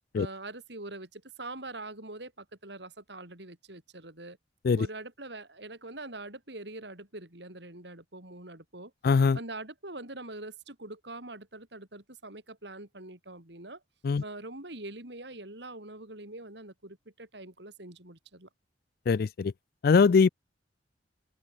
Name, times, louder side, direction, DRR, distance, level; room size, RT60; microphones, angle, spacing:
voice 1, 0.1-4.4 4.8-8.9 9.3-13.8 14.2-18.5, right 2 dB, 65° right, 4.9 m, -43 dB
voice 2, 9.0-9.4 14.0-14.2 19.1-19.5 19.8-20.3, left 5 dB, 55° left, 0.4 m, -22 dB
open air
head